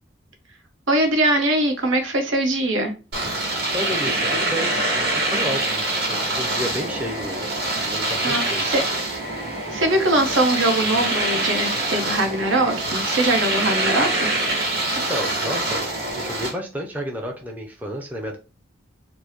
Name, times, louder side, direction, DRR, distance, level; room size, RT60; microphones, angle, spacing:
voice 1, 0.9-2.9 8.2-8.8 9.4-14.3, right 1 dB, 75° right, 1.0 m, -22 dB
Domestic sounds home sounds, 3.1-16.5, right 2 dB, 55° right, 2.0 m, -25 dB
voice 2, 3.7-4.7 5.0-5.8 6.1-7.6 7.8-8.8 14.9-15.9 16.2-18.4, equal, 10° right, 0.5 m, -31 dB
4.4 x 2.1 x 3.0 m
head